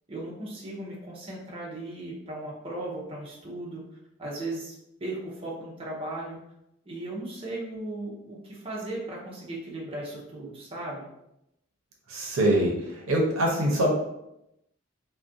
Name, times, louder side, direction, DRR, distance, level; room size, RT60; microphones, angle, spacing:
voice 1, 0.1-3.8 4.2-4.7 5.0-6.4 6.9-11.1, right 2 dB, 25° right, -5 dB, 0.5 m, -36 dB
voice 2, 12.1-13.9, right 1 dB, 75° right, -2 dB, 0.6 m, -24 dB
2.4 x 2.1 x 2.5 m, 0.84 s
head